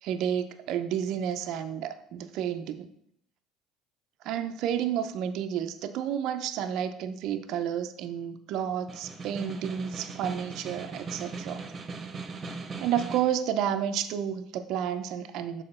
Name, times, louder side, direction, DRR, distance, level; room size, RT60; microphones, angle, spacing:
voice 1, 0.0-2.9 4.2-11.6 12.8-15.6, right 9 dB, 65° right, 8 dB, 0.6 m, -31 dB
Snare drum, 8.7-13.4, right 4 dB, 35° right, 1.1 m, -39 dB
6.6 x 4.8 x 4.3 m, 0.73 s
supercardioid pair, 90°, 0 cm